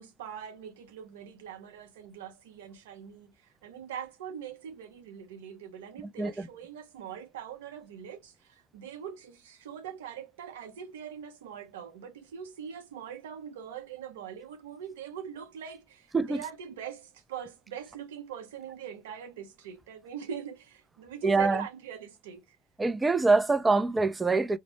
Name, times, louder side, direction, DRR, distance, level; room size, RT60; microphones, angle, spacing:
voice 1, 0.0-3.3 3.6-22.6, right 8 dB, 85° right, 0.6 m, -42 dB
voice 2, 16.1-16.4 21.2-21.7 22.8-24.6, right 3 dB, 15° right, 0.3 m, -25 dB
2.0 x 2.0 x 3.0 m
hypercardioid pair, 90°, 0 cm